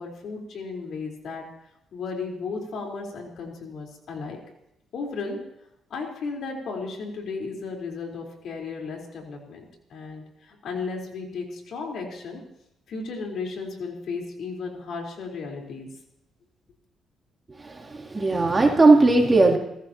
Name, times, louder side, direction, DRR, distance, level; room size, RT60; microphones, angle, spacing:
voice 1, 0.0-1.4 1.9-4.4 4.9-5.4 5.9-12.4 12.9-15.9, left 4 dB, 65° left, 0 dB, 4.2 m, -34 dB
voice 2, 17.6-19.6, right 3 dB, 25° right, 1 dB, 3.2 m, -18 dB
29.5 x 15.0 x 3.0 m, 0.83 s
cardioid pair, 90°, 0 cm